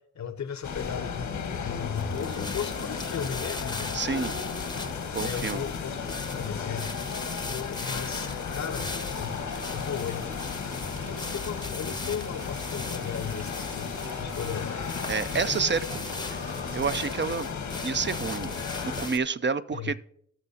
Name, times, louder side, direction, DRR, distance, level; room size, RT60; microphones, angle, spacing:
voice 1, 0.0-3.9 5.2-7.0 7.4-10.3 11.1-14.8 19.7-19.9, left 8 dB, 70° left, 0.8 m, -36 dB
sound 1, 0.6-19.1, left 5 dB, 90° left, 1.3 m, -34 dB
sound 2, 2.0-19.2, left 2 dB, 15° left, 0.7 m, -40 dB
voice 2, 3.9-4.3 5.2-5.6 15.1-16.0 16.3-16.4 16.7-17.5 17.8-18.5 18.8-19.9, right 5 dB, 40° right, 0.5 m, -28 dB
sound 3, 8.7-17.5, right 1 dB, 75° right, 2.5 m, -50 dB
17.5 x 6.1 x 2.8 m
cardioid pair, 40°, 29 cm